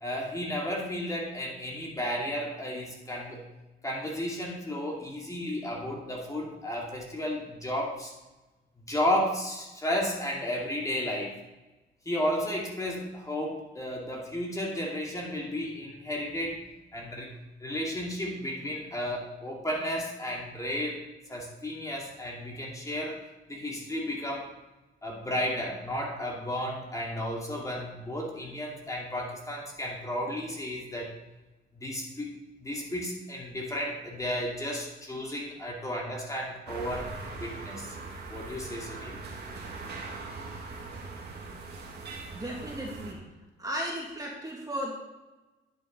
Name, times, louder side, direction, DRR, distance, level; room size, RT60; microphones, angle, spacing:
voice 1, 0.0-3.4 3.8-8.1 8.9-11.3 12.0-16.6 16.9-17.3 17.6-21.0 21.3-23.2 23.5-24.5 25.0-31.1 31.8-37.1 37.4-38.0 38.3-39.2, equal, 15° left, -2 dB, 2.6 m, -33 dB
sound 1, 36.7-43.1, right 3 dB, 55° right, 2.1 m, -41 dB
voice 2, 42.3-43.2 43.6-44.9, equal, 20° right, -2 dB, 2.3 m, -35 dB
10.5 x 6.9 x 3.9 m, 1.1 s
cardioid pair, 90°, 20 cm